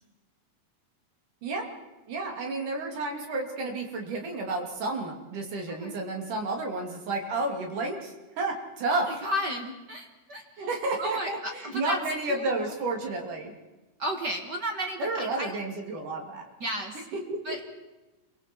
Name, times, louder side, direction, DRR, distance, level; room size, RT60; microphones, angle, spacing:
voice 1, 1.4-1.8 2.1-9.1 10.6-13.5 15.0-16.5 17.1-17.6, right 2 dB, 75° right, 2 dB, 4.4 m, -31 dB
voice 2, 8.9-10.7 11.0-12.0 12.3-12.7 14.0-15.6 16.6-17.0 17.4-17.6, equal, 40° right, 3 dB, 1.7 m, -33 dB
27.0 x 23.5 x 4.6 m, 1.1 s
omnidirectional pair, 3.7 m